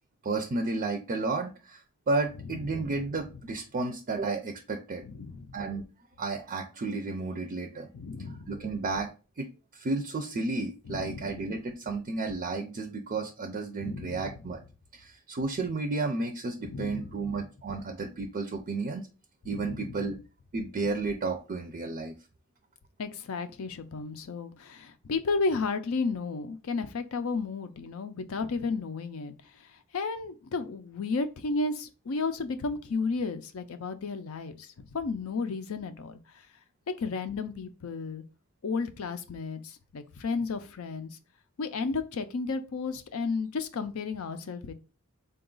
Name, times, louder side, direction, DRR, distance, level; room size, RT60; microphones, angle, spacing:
voice 1, 0.2-5.0 5.5-5.8 6.2-7.9 8.5-9.1 9.4-14.6 14.9-19.1 19.4-20.2 20.5-22.1, right 3 dB, 40° right, 0.4 m, -32 dB
voice 2, 2.6-3.0 5.0-5.5 7.9-8.5 10.9-11.3 13.8-14.3 16.6-17.3 19.5-20.0 23.0-29.3 29.9-36.2 37.0-38.2 38.6-41.2 41.6-44.7, left 4 dB, 80° left, 0.5 m, -33 dB
3.8 x 2.3 x 3.7 m
head